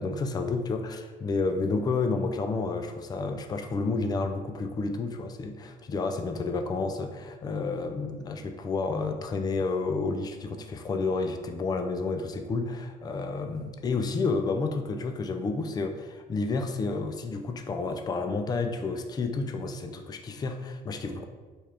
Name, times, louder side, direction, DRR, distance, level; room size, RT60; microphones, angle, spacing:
voice 1, 0.0-21.2, left 3 dB, 25° left, 6 dB, 0.3 m, -30 dB
4.3 x 2.4 x 3.3 m, 1.3 s
cardioid pair, 110°, 17 cm